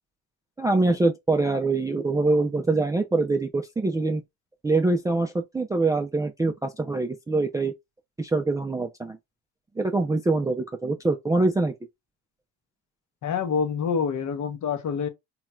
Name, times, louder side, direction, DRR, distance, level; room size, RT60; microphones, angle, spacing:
voice 1, 0.6-4.2 4.6-7.7 8.2-9.2 9.8-11.7, right 3 dB, 10° right, 0.4 m, -24 dB
voice 2, 13.2-15.1, left 6 dB, 45° left, 0.8 m, -26 dB
3.0 x 2.9 x 2.3 m
supercardioid pair, 75°, 40 cm